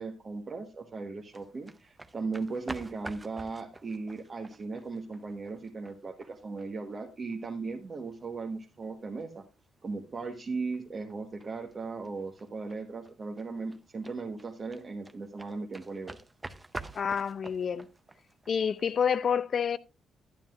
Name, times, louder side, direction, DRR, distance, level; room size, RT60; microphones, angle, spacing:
voice 1, 0.0-9.4 9.8-16.2, right 4 dB, 35° right, 1.2 m, -37 dB
sound 1, 1.3-19.2, right 2 dB, 20° right, 0.7 m, -48 dB
voice 2, 16.9-17.9 18.5-19.8, left 7 dB, 50° left, 0.6 m, -28 dB
11.0 x 10.0 x 2.5 m
cardioid pair, 90°, 0 cm